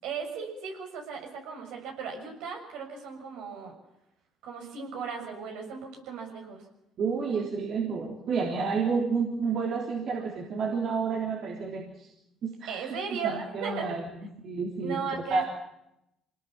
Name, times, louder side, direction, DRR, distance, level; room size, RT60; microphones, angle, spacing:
voice 1, 0.0-3.7 4.4-6.6 12.7-14.0 14.8-15.4, right 6 dB, 80° right, 2 dB, 6.6 m, -36 dB
voice 2, 7.0-12.1 12.4-13.0 13.2-14.1 14.4-15.4, right 5 dB, 55° right, 0 dB, 3.5 m, -30 dB
24.5 x 19.0 x 7.4 m, 0.85 s
supercardioid pair, 80°, 0 cm